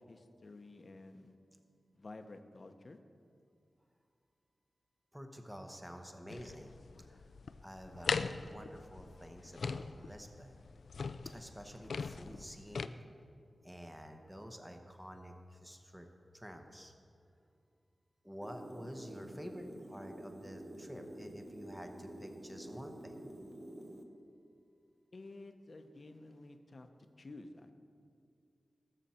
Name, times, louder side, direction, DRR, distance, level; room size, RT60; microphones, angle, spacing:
voice 1, 0.0-1.3 1.9-3.0 25.1-26.9 27.2-27.7, left 2 dB, 45° left, 7 dB, 0.8 m, -52 dB
voice 2, 5.1-7.3 7.6-10.6 11.2-13.0 13.6-16.1 16.3-16.9 18.2-23.2, equal, 5° right, 4 dB, 0.9 m, -49 dB
sound 1, 6.3-12.9, left 5 dB, 80° left, 0.3 m, -40 dB
sound 2, 18.4-24.0, right 1 dB, 50° right, 1.0 m, -49 dB
19.0 x 7.4 x 4.3 m, 2.4 s
wide cardioid pair, 120°, 0 cm